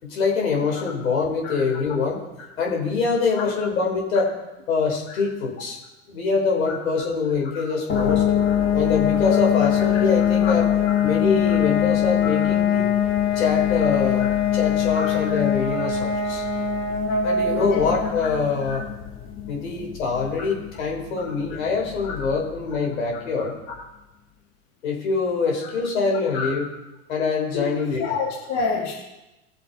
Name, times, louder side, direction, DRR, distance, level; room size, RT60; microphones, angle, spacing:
voice 1, 0.0-2.2 2.6-4.3 4.7-5.8 6.1-8.3 8.7-10.7 11.0-12.9 13.4-16.4 17.2-18.8 19.5-23.6 24.8-26.7 27.1-28.0, left 4 dB, 75° left, 0 dB, 4.4 m, -24 dB
sound 1, 7.9-22.5, left 8 dB, 30° left, 2.1 m, -23 dB
voice 2, 15.0-15.4 17.5-17.8 18.7-18.8 22.0-22.1 26.3-26.5 27.5-27.7 28.0-28.9, left 5 dB, 55° left, -3 dB, 2.7 m, -28 dB
20.0 x 7.2 x 4.3 m, 0.99 s
hypercardioid pair, 105°, 40 cm